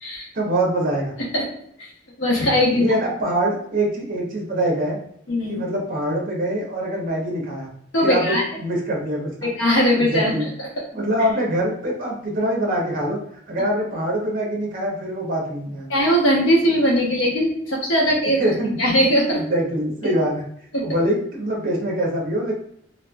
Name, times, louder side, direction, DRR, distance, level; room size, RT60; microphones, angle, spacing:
voice 1, 0.3-1.2 2.7-5.0 5.5-7.7 8.0-9.5 9.9-10.5 10.9-15.9 18.4-18.8 19.3-20.5 20.8-22.5, right 1 dB, 45° right, -1 dB, 0.7 m, -24 dB
voice 2, 2.2-2.8 5.3-5.6 7.9-8.4 9.6-10.3 15.9-18.4 18.8-19.4 20.0-20.1 20.7-20.9, equal, 85° left, -2 dB, 0.9 m, -19 dB
3.0 x 2.2 x 2.2 m, 0.68 s
head